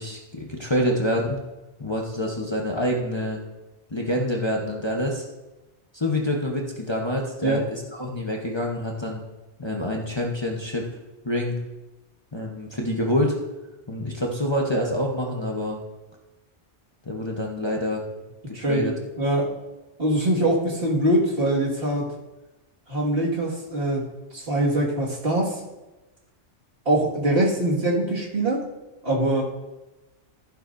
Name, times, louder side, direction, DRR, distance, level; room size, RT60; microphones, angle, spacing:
voice 1, 0.0-1.4 1.8-3.4 3.9-5.2 5.9-9.2 9.6-10.9 11.2-11.6 12.3-13.4 13.9-15.8 17.1-18.0 18.5-18.9, left 1 dB, 25° left, -1 dB, 1.0 m, -26 dB
voice 2, 18.5-19.5 20.0-22.1 22.9-25.6 26.9-28.6 29.0-29.4, right 1 dB, 55° right, -4 dB, 2.2 m, -23 dB
14.5 x 9.6 x 2.6 m, 1.1 s
omnidirectional pair, 1.2 m